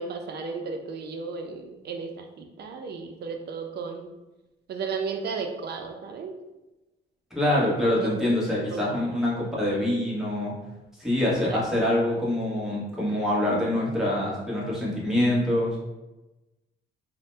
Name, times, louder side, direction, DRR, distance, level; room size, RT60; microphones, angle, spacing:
voice 1, 0.0-4.1 4.7-6.3 8.0-8.1 8.7-9.0 9.3-9.4 11.5-11.6, right 5 dB, 55° right, 5 dB, 0.5 m, -34 dB
voice 2, 7.3-10.5 11.0-15.8, left 1 dB, ahead, -6 dB, 1.0 m, -25 dB
2.6 x 2.1 x 3.1 m, 1.0 s
cardioid pair, 90°, 20 cm